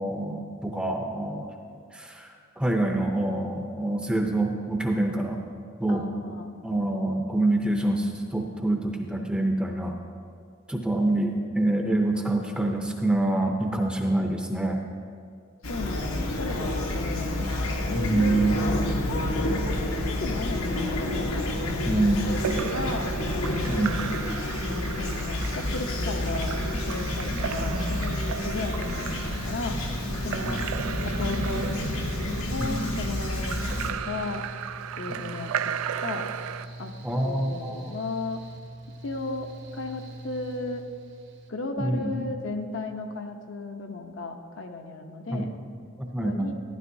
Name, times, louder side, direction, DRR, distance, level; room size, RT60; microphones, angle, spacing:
voice 1, 0.0-1.5 1.9-5.4 5.8-6.0 6.6-10.0 10.7-14.8 18.0-18.6 21.8-22.2 23.7-23.9 27.3-27.4 30.5-30.6 32.6-33.0 35.1-35.2 37.0-37.9 41.8-42.3 45.3-45.5 46.0-46.5, right 2 dB, 5° right, 2 dB, 0.6 m, -26 dB
voice 2, 5.9-6.6 15.7-17.3 17.8-18.8 19.0-19.8 20.1-21.4 21.9-23.1 23.7-24.2 25.0-29.9 30.2-30.6 31.0-31.7 32.5-34.4 35.0-35.7 36.0-36.2 36.8-36.9 37.2-38.4 39.0-40.8 41.5-45.5 46.2-46.5, left 3 dB, 60° left, 4 dB, 0.7 m, -35 dB
Fowl / Chirp tweet, 15.6-33.9, left 1 dB, 85° left, 1.0 m, -29 dB
Splash splatter / Drip / Trickle dribble, 22.3-36.7, right 9 dB, 85° right, 0.3 m, -35 dB
Mechanical fan, 28.9-41.5, right 1 dB, 55° right, 1.0 m, -43 dB
12.5 x 11.5 x 2.7 m, 2.2 s
head